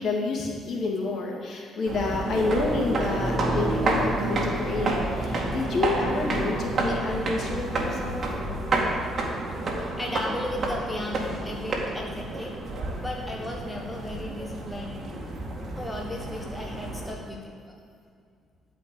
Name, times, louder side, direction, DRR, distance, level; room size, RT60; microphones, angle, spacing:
voice 1, 0.0-8.2, left 3 dB, 55° left, -1 dB, 2.5 m, -29 dB
sound 1, 1.9-17.1, right 2 dB, 40° right, 2.2 m, -29 dB
voice 2, 9.0-9.4 9.6-12.5 13.0-15.0 15.7-17.7, left 1 dB, 10° left, -1 dB, 1.4 m, -36 dB
12.5 x 5.2 x 9.1 m, 2.2 s
cardioid pair, 105°, 0 cm